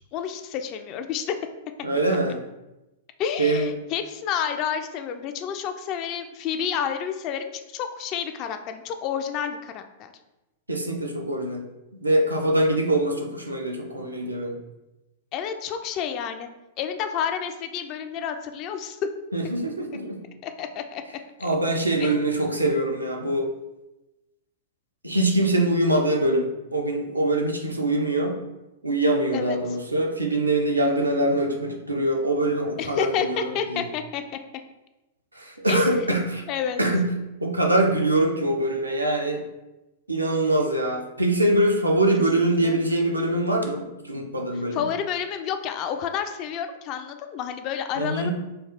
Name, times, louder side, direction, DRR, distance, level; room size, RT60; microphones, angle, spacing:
voice 1, 0.1-1.3 3.2-10.1 15.3-16.5 16.8-19.0 20.4-21.0 22.0-22.2 29.3-29.6 30.8-31.1 32.8-34.2 35.7-36.1 36.5-36.8 42.6-42.8 44.7-48.3, left 8 dB, 35° left, 7 dB, 0.3 m, -29 dB
voice 2, 1.8-2.4 3.4-3.7 10.7-11.6 11.9-14.6 19.3-20.2 21.4-23.5 25.0-28.4 28.8-33.9 35.3-36.4 36.8-37.1 37.4-39.4 40.1-44.9 48.0-48.3, right 1 dB, 85° right, 1 dB, 0.5 m, -23 dB
3.3 x 2.3 x 4.0 m, 1.0 s
figure-of-eight pair, 100°, 0 cm